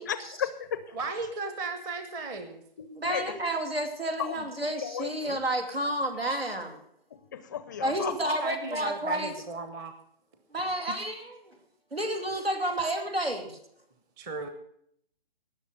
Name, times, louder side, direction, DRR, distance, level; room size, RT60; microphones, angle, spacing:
voice 1, 0.1-1.0 2.8-3.4 4.2-4.4 4.8-5.4 7.3-8.2, left 9 dB, 20° left, 13 dB, 0.5 m, -34 dB
voice 2, 0.9-2.6 8.2-9.9 10.9-11.0 14.2-14.5, right 3 dB, 10° right, 9 dB, 0.8 m, -35 dB
voice 3, 3.0-6.8 7.8-9.3 10.5-11.5 11.9-13.6, right 1 dB, 90° right, 6 dB, 2.9 m, -30 dB
18.5 x 6.6 x 6.6 m, 0.68 s
figure-of-eight pair, 140°, 29 cm